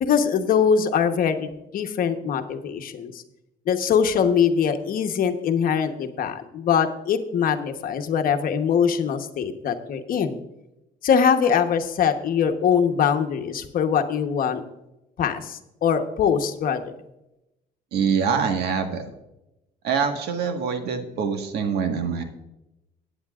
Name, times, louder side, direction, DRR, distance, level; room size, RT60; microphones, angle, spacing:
voice 1, 0.0-3.2 3.7-10.4 11.0-14.6 15.2-16.8, left 7 dB, 55° left, 7 dB, 1.1 m, -22 dB
voice 2, 17.9-19.0 19.8-22.2, right 6 dB, 75° right, 5 dB, 1.6 m, -24 dB
16.0 x 9.5 x 2.5 m, 0.91 s
cardioid pair, 110°, 17 cm